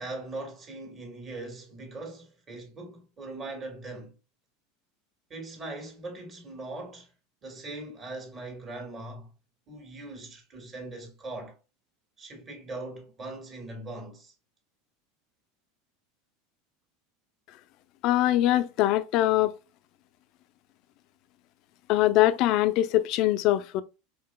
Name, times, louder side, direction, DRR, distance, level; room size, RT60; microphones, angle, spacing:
voice 1, 0.0-4.1 5.3-7.1 7.4-9.3 9.7-11.6 12.2-14.3, right 2 dB, 25° right, 1.6 m, -40 dB
voice 2, 18.0-19.5 21.9-23.8, left 14 dB, 50° left, 0.4 m, -23 dB
4.7 x 3.9 x 2.2 m
supercardioid pair, 145°, 0 cm